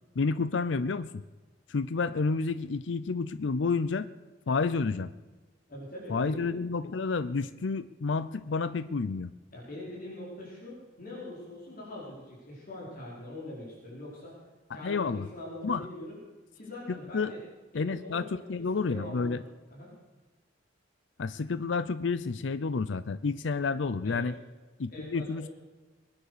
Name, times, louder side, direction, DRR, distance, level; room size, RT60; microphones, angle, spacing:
voice 1, 0.2-1.2 1.7-4.1 4.5-5.1 6.1-9.3 14.8-15.3 15.6-15.8 17.1-17.3 17.7-19.4 21.2-24.3 24.8-25.5, left 4 dB, 70° left, 14 dB, 0.5 m, -30 dB
voice 2, 5.7-6.5 9.5-14.3 14.7-16.2 16.5-17.4 17.7-19.4 19.7-19.9 24.0-24.3 24.9-25.5, left 1 dB, 50° left, -5 dB, 5.0 m, -43 dB
21.5 x 9.7 x 6.7 m, 1.3 s
head